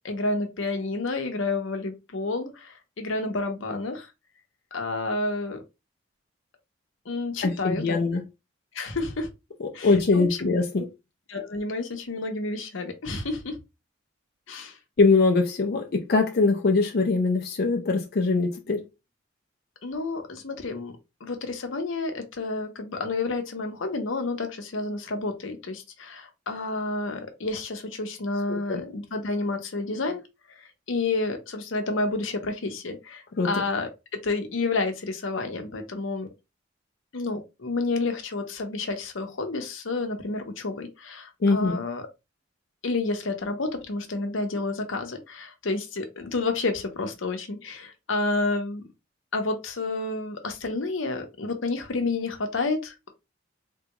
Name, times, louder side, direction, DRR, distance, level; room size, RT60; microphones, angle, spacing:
voice 1, 0.0-4.1 4.7-5.6 7.1-8.0 8.7-9.3 9.7-10.5 11.3-13.6 14.5-14.7 19.8-20.9 21.2-30.2 30.9-36.3 37.1-42.1 42.8-48.8 49.3-53.1, left 3 dB, 85° left, 0.8 m, -30 dB
voice 2, 7.4-8.2 9.6-10.9 15.0-18.8 28.5-28.8 33.4-33.6 41.4-41.8, left 3 dB, 55° left, 0.5 m, -22 dB
3.6 x 2.3 x 2.9 m
head